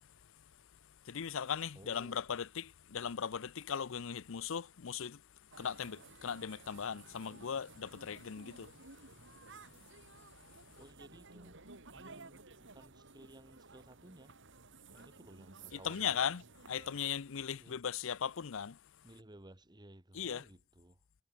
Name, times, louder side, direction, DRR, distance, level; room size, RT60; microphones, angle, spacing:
voice 1, 1.1-5.2 5.6-8.7 15.7-16.4 16.7-18.8 20.1-20.4, left 7 dB, 65° left, 0.6 m, -38 dB
voice 2, 1.7-2.2 10.7-11.6 11.9-14.4 14.9-16.4 17.5-17.8 19.0-21.0, right 1 dB, 20° right, 1.6 m, -57 dB
sound 1, 5.5-17.1, right 3 dB, 60° right, 4.3 m, -56 dB
head